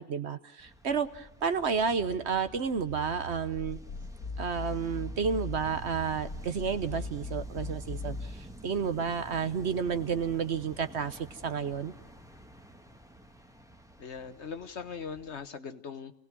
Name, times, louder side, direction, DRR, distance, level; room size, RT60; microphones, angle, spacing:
voice 1, 0.0-3.8 4.4-11.9, right 6 dB, 55° right, 11 dB, 1.2 m, -31 dB
sound 1, 0.6-15.5, equal, 5° right, 1.2 m, -49 dB
sound 2, 2.9-8.4, left 2 dB, 90° left, 2.3 m, -39 dB
voice 2, 14.0-16.1, left 6 dB, 55° left, 11 dB, 1.3 m, -40 dB
28.0 x 18.0 x 6.1 m, 0.79 s
omnidirectional pair, 1.4 m